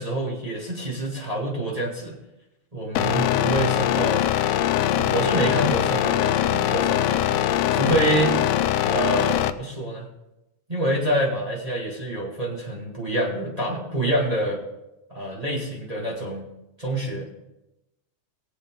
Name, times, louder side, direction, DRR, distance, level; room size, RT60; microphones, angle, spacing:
voice 1, 0.0-2.1 2.7-4.2 4.9-7.4 7.7-8.3 8.8-10.1 10.7-14.6 15.1-16.5 16.8-17.3, right 1 dB, 15° right, -4 dB, 1.4 m, -26 dB
sound 1, 3.0-9.5, left 12 dB, 90° left, 2.1 m, -22 dB
19.5 x 8.1 x 3.7 m, 0.94 s
omnidirectional pair, 3.5 m